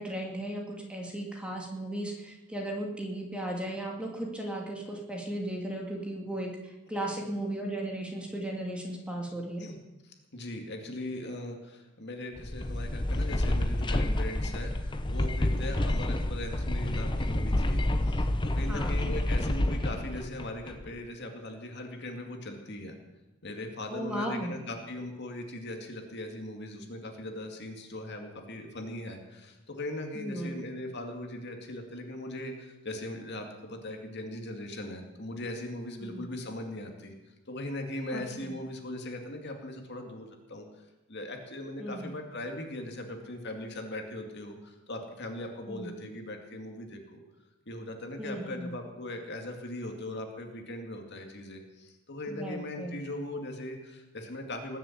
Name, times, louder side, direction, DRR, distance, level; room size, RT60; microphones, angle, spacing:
voice 1, 0.0-9.6 18.7-18.9 23.9-24.5 30.1-30.6 36.0-36.2 38.1-38.6 41.8-42.1 45.7-45.9 48.2-48.7 52.3-53.0, right 1 dB, 5° right, -1 dB, 2.4 m, -36 dB
voice 2, 10.0-23.0 23.4-37.1 37.5-40.7 41.1-47.2 47.7-54.8, left 1 dB, 50° left, 3 dB, 2.3 m, -39 dB
sound 1, 12.4-20.9, left 1 dB, 20° left, 0.8 m, -29 dB
20.0 x 7.4 x 8.6 m, 1.0 s
head